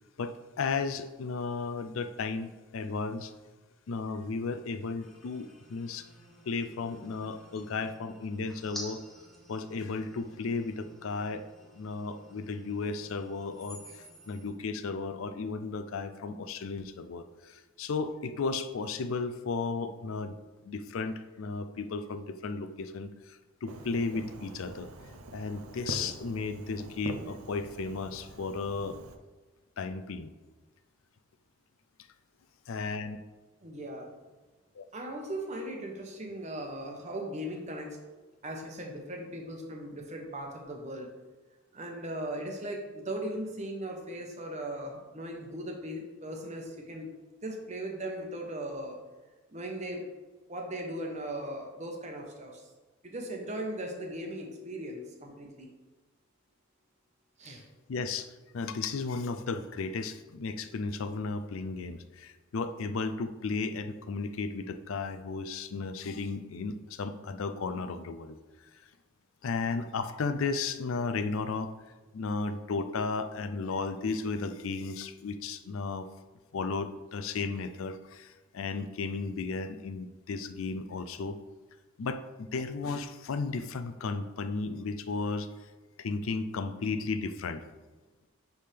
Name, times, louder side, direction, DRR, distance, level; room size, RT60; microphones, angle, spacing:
voice 1, 0.2-3.3 3.9-6.1 6.5-9.0 9.5-11.5 11.8-13.8 14.3-20.4 20.6-24.9 25.3-29.0 29.8-30.3 32.7-33.2 34.8-34.9 57.9-58.3 58.5-68.4 69.4-71.7 72.1-76.1 76.5-81.4 82.0-85.5 86.0-87.7, left 4 dB, 70° left, 11 dB, 0.4 m, -34 dB
sound 1, 5.0-14.5, equal, ahead, 0.9 m, -51 dB
Fireworks, 23.7-29.2, right 2 dB, 85° right, 0.6 m, -44 dB
voice 2, 33.6-34.1 34.9-38.0 38.4-41.1 41.7-47.1 47.4-49.0 49.5-50.0 50.5-52.6 53.0-55.7 57.4-57.6, right 1 dB, 35° right, 1 dB, 1.0 m, -38 dB
9.8 x 3.6 x 3.4 m, 1.3 s
head